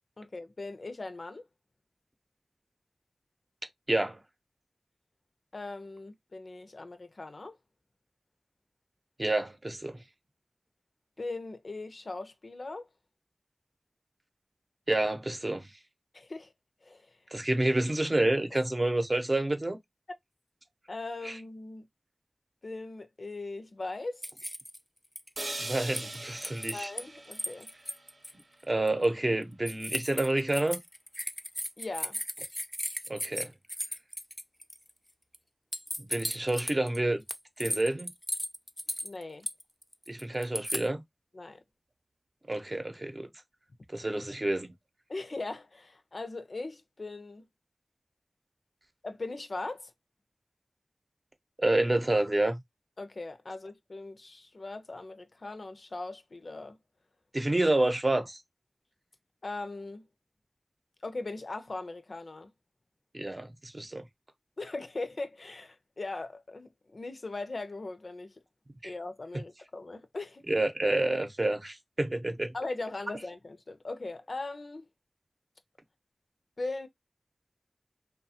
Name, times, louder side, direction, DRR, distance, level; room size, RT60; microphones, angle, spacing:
voice 1, 0.2-1.4 5.5-7.6 11.2-12.9 16.1-16.5 16.8-17.2 20.9-21.9 22.6-24.2 26.7-27.7 31.8-32.2 39.0-39.5 41.3-41.6 44.1-44.2 45.1-47.5 49.0-49.9 53.0-56.8 59.4-60.1 61.0-62.5 64.6-68.3 68.8-70.4 72.5-74.9 76.6-76.9, left 2 dB, 75° left, 0.5 m, -39 dB
voice 2, 3.9-4.2 9.2-10.0 14.9-15.7 17.3-19.8 21.2-21.4 25.6-26.9 28.6-30.8 33.1-33.5 36.0-37.2 37.6-38.1 40.1-41.0 42.5-43.3 43.9-44.7 51.6-52.6 57.3-58.4 63.1-64.1 68.8-68.9 70.5-72.5, right 2 dB, 40° right, 0.7 m, -28 dB
sound 1, 24.2-24.8 25.2-27.0 27.3-28.3 28.9-29.0 29.7-34.9 35.3-35.4 35.7-37.0 37.3-40.9, equal, 5° left, 0.4 m, -36 dB
sound 2, 25.4-29.4, right 2 dB, 80° right, 0.8 m, -42 dB
3.0 x 2.2 x 2.7 m
wide cardioid pair, 45°, 0 cm